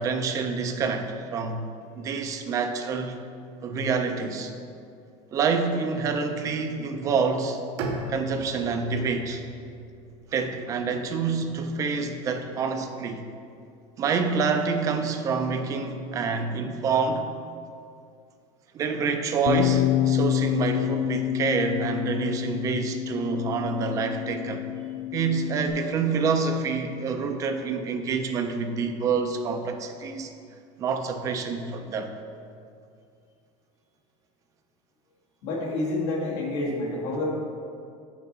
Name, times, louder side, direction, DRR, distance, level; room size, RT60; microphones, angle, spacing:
voice 1, 0.0-1.7 2.0-3.2 3.6-4.5 5.3-7.6 8.1-9.4 10.3-13.2 14.0-17.3 18.7-24.6 25.1-30.3 30.8-32.1, right 5 dB, 20° right, 6 dB, 0.4 m, -27 dB
Bowed string instrument, 7.8-11.7, right 1 dB, 75° right, 0.9 m, -38 dB
Bass guitar, 19.5-25.7, left 13 dB, 85° left, 0.6 m, -27 dB
voice 2, 35.4-37.3, left 2 dB, 50° left, -5 dB, 1.7 m, -28 dB
6.4 x 6.0 x 4.1 m, 2.4 s
cardioid pair, 175°, 15 cm